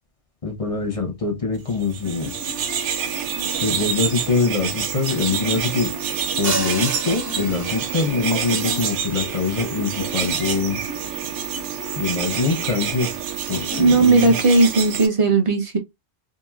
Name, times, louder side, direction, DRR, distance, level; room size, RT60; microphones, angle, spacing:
voice 1, 0.4-2.3 3.6-5.9 6.4-10.8 12.0-13.1 13.5-14.4, left 4 dB, 40° left, 0.6 m, -24 dB
sound 1, 1.8-15.1, right 8 dB, 80° right, 0.9 m, -27 dB
sound 2, 2.0-15.2, left 5 dB, 10° right, 0.9 m, -38 dB
sound 3, 6.4-8.2, right 4 dB, 60° right, 0.9 m, -29 dB
voice 2, 13.8-15.8, right 3 dB, 35° right, 0.6 m, -16 dB
2.9 x 2.6 x 2.3 m
omnidirectional pair, 1.2 m